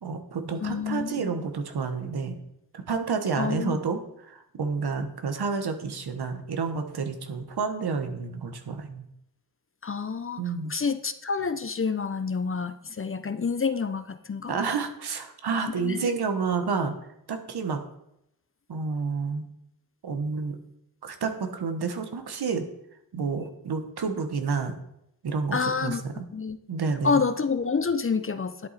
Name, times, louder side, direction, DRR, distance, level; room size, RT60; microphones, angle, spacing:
voice 1, 0.0-2.4 2.7-9.1 10.4-10.7 14.5-16.9 17.3-17.8 18.7-19.5 20.0-20.6 21.0-22.7 23.1-24.8 25.2-26.2 26.7-27.2, right 5 dB, 65° right, 7 dB, 1.4 m, -30 dB
voice 2, 0.6-1.4 3.4-3.8 9.8-14.5 15.7-16.1 25.5-26.0 26.3-26.6 27.0-28.7, left 5 dB, 30° left, 11 dB, 0.7 m, -28 dB
10.5 x 8.3 x 4.2 m, 0.79 s
cardioid pair, 60°, 41 cm